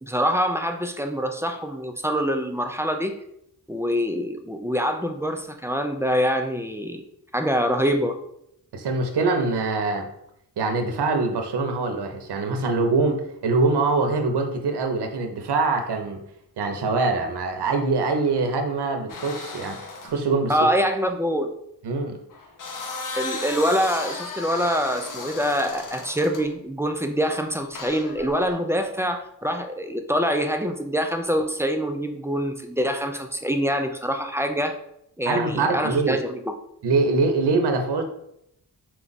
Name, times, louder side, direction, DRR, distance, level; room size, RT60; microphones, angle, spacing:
voice 1, 0.0-3.2 3.7-7.0 7.3-8.2 20.5-21.5 23.1-34.7 35.2-36.5, equal, 5° right, 5 dB, 0.3 m, -25 dB
voice 2, 8.7-10.1 10.6-16.2 16.6-20.5 21.8-22.2 35.3-36.2 36.8-38.0, right 3 dB, 80° right, 5 dB, 0.7 m, -23 dB
sound 1, 19.1-20.2 22.3-26.5 27.8-28.6, left 4 dB, 55° left, 0.7 m, -35 dB
4.4 x 2.4 x 3.9 m, 0.76 s
wide cardioid pair, 100°, 39 cm